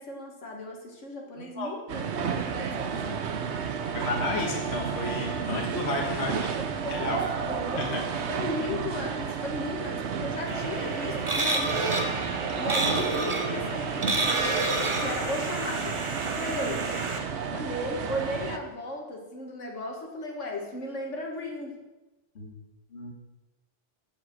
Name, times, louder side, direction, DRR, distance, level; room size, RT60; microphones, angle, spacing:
voice 1, 0.0-3.3 6.8-7.1 7.5-12.2 12.6-16.0 16.3-16.9 17.5-21.7, left 1 dB, 85° left, 1 dB, 2.1 m, -36 dB
voice 2, 1.4-1.7 3.9-6.6 6.9-7.3 7.8-8.0 22.4-22.5 22.9-23.1, left 2 dB, 65° left, 0 dB, 1.7 m, -32 dB
sound 1, 1.9-18.6, right 6 dB, 70° right, 1.1 m, -32 dB
sound 2, 10.5-17.2, right 2 dB, 30° right, 0.9 m, -30 dB
7.9 x 7.2 x 7.6 m, 1.1 s
omnidirectional pair, 1.2 m